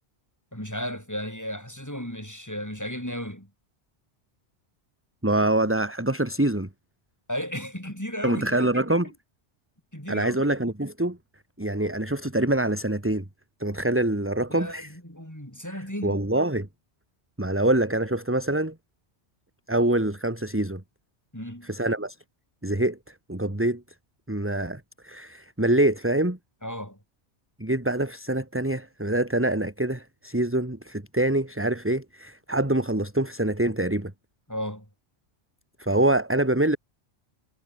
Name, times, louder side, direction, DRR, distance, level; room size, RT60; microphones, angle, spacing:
voice 1, 0.5-3.5 7.3-9.0 9.9-10.5 14.5-16.2 21.3-21.7 26.6-27.0 34.5-34.9, equal, 15° left, 6.5 m, -34 dB
voice 2, 5.2-6.7 8.2-9.1 10.1-11.2 11.6-13.2 13.6-14.9 16.0-16.7 17.4-18.7 19.7-20.8 21.6-22.2 22.6-23.0 23.3-23.8 24.3-26.4 27.6-34.1 35.8-36.8, right 1 dB, 10° right, 2.2 m, -25 dB
omnidirectional pair, 1.2 m